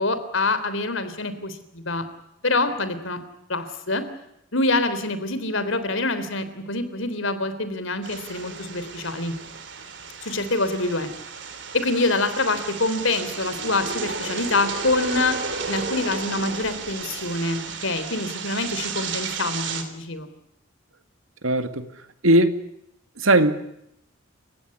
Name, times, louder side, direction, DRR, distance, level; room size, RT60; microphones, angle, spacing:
voice 1, 0.0-2.0 2.4-3.2 3.5-4.0 4.5-9.3 10.2-11.1 11.7-15.4 15.7-20.3, left 2 dB, 70° left, 3.4 m, -25 dB
sound 1, 8.0-19.8, right 5 dB, 60° right, 3.3 m, -33 dB
voice 2, 21.4-21.8 22.2-22.5 23.2-23.6, right 1 dB, 85° right, 2.2 m, -18 dB
29.5 x 16.0 x 9.7 m
head